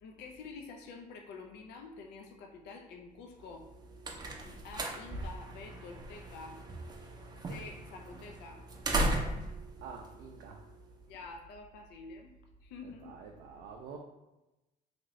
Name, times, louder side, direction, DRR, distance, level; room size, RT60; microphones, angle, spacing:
voice 1, 0.0-3.7 4.4-6.6 6.9-7.1 7.5-8.6 11.1-12.3 12.6-13.1, left 4 dB, 80° left, 3 dB, 0.5 m, -48 dB
sound 1, 3.5-11.0, right 2 dB, 25° right, 0.5 m, -37 dB
voice 2, 9.8-10.6 12.8-14.0, right 5 dB, 80° right, 1 dB, 0.4 m, -47 dB
2.9 x 2.6 x 3.0 m, 0.99 s
cardioid pair, 110°, 17 cm